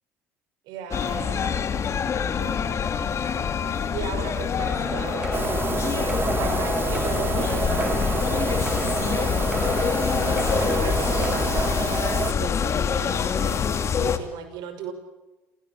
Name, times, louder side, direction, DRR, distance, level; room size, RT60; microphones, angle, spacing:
voice 1, 0.7-1.7 2.4-2.9 3.9-5.6 6.4-10.2 10.6-11.7 12.4-14.9, right 8 dB, 70° right, 9 dB, 5.7 m, -38 dB
sound 1, 0.9-14.2, left 7 dB, 40° left, 2.6 m, -25 dB
sound 2, 4.6-11.4, right 2 dB, 10° right, 4.4 m, -34 dB
sound 3, 5.3-12.3, right 5 dB, 30° right, 2.3 m, -28 dB
28.5 x 18.0 x 8.5 m, 1.1 s
supercardioid pair, 80°, 7 cm